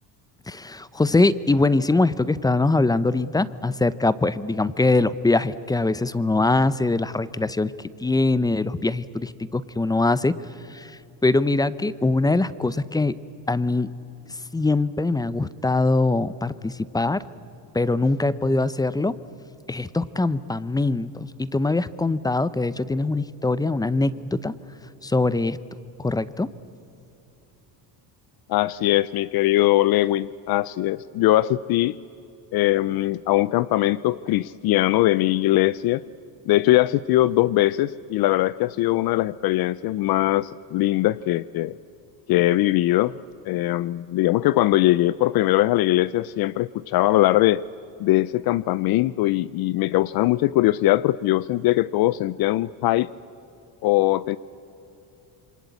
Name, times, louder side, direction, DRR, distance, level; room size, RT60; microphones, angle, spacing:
voice 1, 0.5-7.7 8.0-10.4 10.7-13.2 13.5-13.9 14.5-17.2 17.7-19.2 19.7-24.5 25.0-25.6 26.0-26.5, left 2 dB, 10° left, 17 dB, 0.6 m, -22 dB
voice 2, 28.5-31.9 32.5-36.0 36.5-41.8 42.3-43.1 43.5-47.6 48.0-53.1 53.8-54.4, left 16 dB, 60° left, 18 dB, 0.6 m, -21 dB
27.5 x 24.5 x 8.4 m, 2.8 s
cardioid pair, 130°, 42 cm